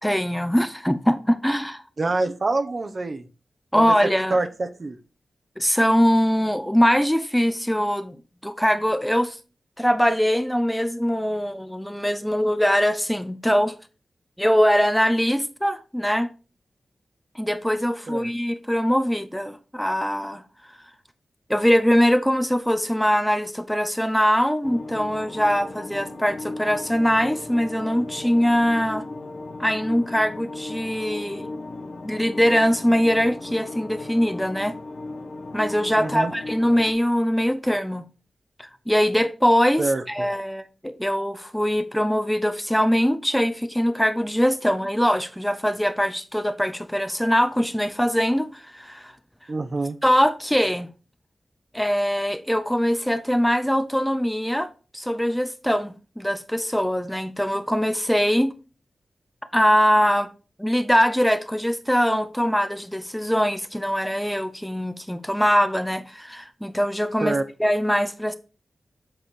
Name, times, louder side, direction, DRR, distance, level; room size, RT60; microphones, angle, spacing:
voice 1, 0.0-1.8 3.7-4.4 5.6-8.2 8.4-9.4 9.8-13.8 14.4-16.3 17.4-20.4 21.5-29.0 29.6-31.5 32.0-34.7 35.5-38.1 38.6-49.1 50.0-50.9 51.7-54.7 54.9-58.5 59.5-60.3 60.6-68.3, equal, 5° left, 0.5 m, -22 dB
voice 2, 2.0-3.2 3.7-3.9 4.3-5.0 18.1-18.3 36.0-36.3 39.8-40.3 49.5-50.0 67.2-67.4, right 2 dB, 45° right, 0.8 m, -26 dB
sound 1, 24.6-36.9, left 2 dB, 75° left, 1.7 m, -36 dB
7.8 x 4.2 x 4.7 m
wide cardioid pair, 90°, 0 cm